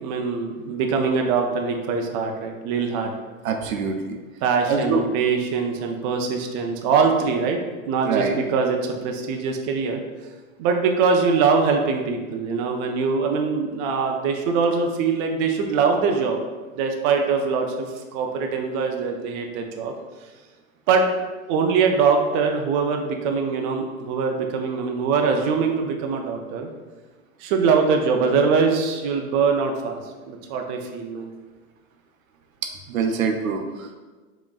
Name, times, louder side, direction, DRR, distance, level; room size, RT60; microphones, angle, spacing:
voice 1, 0.0-3.1 4.4-10.0 10.6-16.4 16.8-17.9 18.1-19.9 20.9-21.1 21.5-26.7 27.4-30.0 30.3-31.3, right 5 dB, 35° right, 3 dB, 0.4 m, -22 dB
voice 2, 3.4-4.2 4.7-5.0 8.0-8.4 32.9-33.9, right 5 dB, 75° right, 4 dB, 0.6 m, -24 dB
4.8 x 3.0 x 2.4 m, 1.3 s
hypercardioid pair, 95°, 42 cm